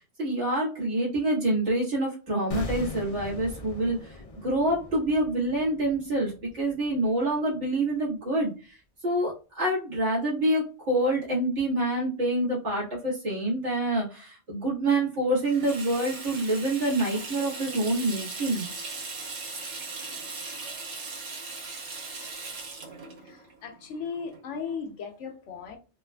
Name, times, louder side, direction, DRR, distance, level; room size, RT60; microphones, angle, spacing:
voice 1, 0.0-8.8 9.0-18.7, right 1 dB, 80° right, 2.0 m, -27 dB
sound 1, 2.5-7.5 7.8-7.9, left 2 dB, 45° left, 0.4 m, -40 dB
Water tap faucet / Sink (filling or washing), 15.4-24.7, right 3 dB, 65° right, 1.1 m, -39 dB
voice 2, 23.2-25.8, left 6 dB, 85° left, 1.0 m, -37 dB
4.1 x 2.4 x 2.2 m
omnidirectional pair, 1.2 m